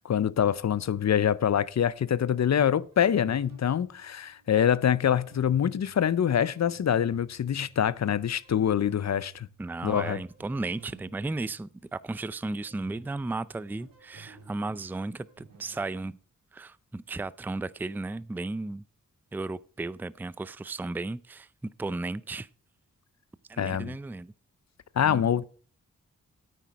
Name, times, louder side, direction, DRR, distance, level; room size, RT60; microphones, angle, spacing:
voice 1, 0.0-9.5 9.8-10.2 23.6-23.9 25.0-25.5, left 9 dB, 55° left, 0.6 m, -25 dB
sound 1, 2.9-15.9, right 5 dB, 80° right, 3.4 m, -55 dB
voice 2, 9.6-16.2 16.5-18.8 19.3-22.5 23.5-24.3 25.0-25.5, right 2 dB, 5° right, 0.4 m, -35 dB
9.2 x 9.2 x 4.1 m
cardioid pair, 55°, 32 cm